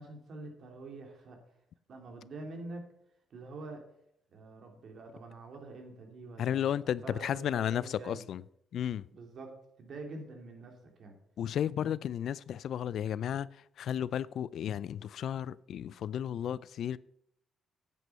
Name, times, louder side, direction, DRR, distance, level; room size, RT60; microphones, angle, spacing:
voice 1, 0.0-1.4 1.9-2.9 3.3-3.8 4.3-8.2 9.1-11.2, right 2 dB, 60° right, 2.8 m, -46 dB
voice 2, 6.4-8.4 8.7-9.1 11.4-13.5 13.8-17.0, left 10 dB, 70° left, 0.3 m, -33 dB
9.3 x 8.2 x 5.5 m
cardioid pair, 90°, 0 cm